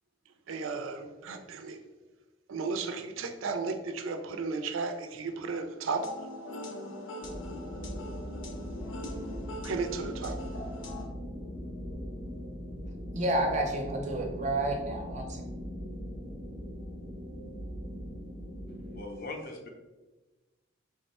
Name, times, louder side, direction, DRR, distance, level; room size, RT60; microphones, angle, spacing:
voice 1, 0.5-1.8 2.5-6.1 9.6-10.4, right 4 dB, 85° right, 6 dB, 0.4 m, -34 dB
sound 1, 5.9-11.1, left 1 dB, 85° left, 0.7 m, -42 dB
sound 2, 7.2-19.0, equal, 5° left, 0.7 m, -40 dB
voice 2, 13.1-15.4, right 1 dB, 35° right, 2 dB, 0.5 m, -30 dB
voice 3, 18.9-19.7, left 2 dB, 50° left, 3 dB, 0.6 m, -40 dB
3.5 x 2.1 x 4.1 m, 1.2 s
head